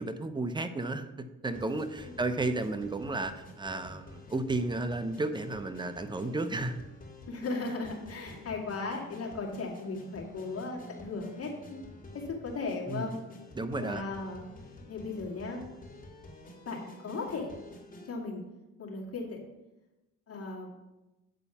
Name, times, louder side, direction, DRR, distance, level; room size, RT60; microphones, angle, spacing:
voice 1, 0.0-6.7 12.9-13.1 13.5-14.0, right 2 dB, 15° right, 9 dB, 0.8 m, -33 dB
sound 1, 1.5-18.1, left 1 dB, 30° left, 2.7 m, -49 dB
voice 2, 7.3-11.8 12.1-13.2 13.8-14.5 14.9-15.6 16.7-17.5 18.1-18.4 18.8-19.4 20.3-20.7, left 3 dB, 50° left, -1 dB, 2.3 m, -36 dB
9.2 x 4.1 x 7.0 m, 1.0 s
cardioid pair, 90°, 30 cm